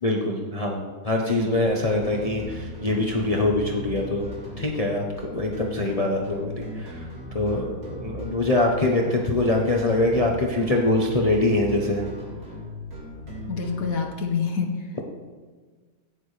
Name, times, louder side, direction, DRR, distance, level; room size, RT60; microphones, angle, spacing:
voice 1, 0.0-4.3 4.6-5.1 5.3-7.1 7.3-12.0, left 2 dB, 25° left, 0 dB, 0.9 m, -24 dB
sound 1, 1.4-13.9, left 1 dB, 70° right, 3.2 m, -38 dB
voice 2, 13.5-15.0, left 5 dB, 65° left, 3 dB, 1.5 m, -27 dB
15.5 x 9.8 x 3.3 m, 1.5 s
omnidirectional pair, 1.7 m